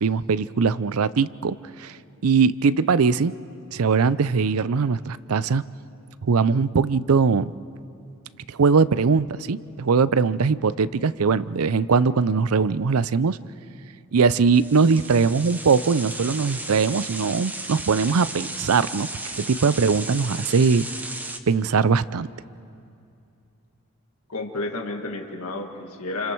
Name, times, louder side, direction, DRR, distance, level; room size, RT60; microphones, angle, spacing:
voice 1, 0.0-2.0 2.2-3.3 3.7-5.6 6.2-7.5 8.5-13.4 14.1-19.1 19.4-20.9 21.5-22.3, right 5 dB, 85° right, 17 dB, 0.5 m, -21 dB
sound 1, 14.5-21.4, right 2 dB, 10° right, 0.7 m, -35 dB
voice 2, 24.3-26.3, left 2 dB, 90° left, 2 dB, 1.9 m, -31 dB
29.0 x 28.5 x 4.6 m, 2.6 s
head